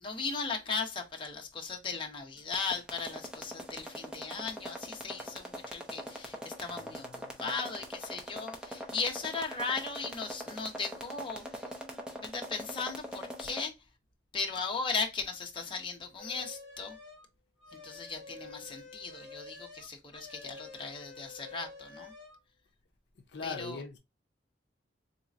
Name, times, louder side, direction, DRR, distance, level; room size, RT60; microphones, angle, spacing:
voice 1, 0.0-11.7 12.1-13.7 14.3-17.0 17.7-22.1 23.4-23.8, left 4 dB, 30° left, 0.8 m, -37 dB
sound 1, 2.4-13.6, equal, 5° right, 0.7 m, -41 dB
voice 2, 6.7-7.6 23.3-24.0, left 4 dB, 70° left, 0.6 m, -42 dB
sound 2, 16.2-17.3 17.6-22.4, left 3 dB, 70° right, 2.4 m, -49 dB
4.0 x 2.8 x 2.4 m
head